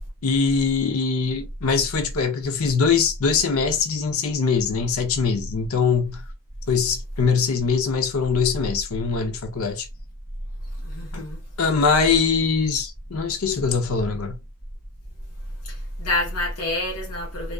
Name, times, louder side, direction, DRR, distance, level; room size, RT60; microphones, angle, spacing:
voice 1, 0.2-6.2 6.7-9.9 11.1-11.2 11.6-14.4, left 5 dB, 70° left, 0.6 m, -22 dB
voice 2, 10.8-11.4 15.6-17.5, left 1 dB, 85° left, 1.0 m, -27 dB
2.5 x 2.3 x 2.2 m
head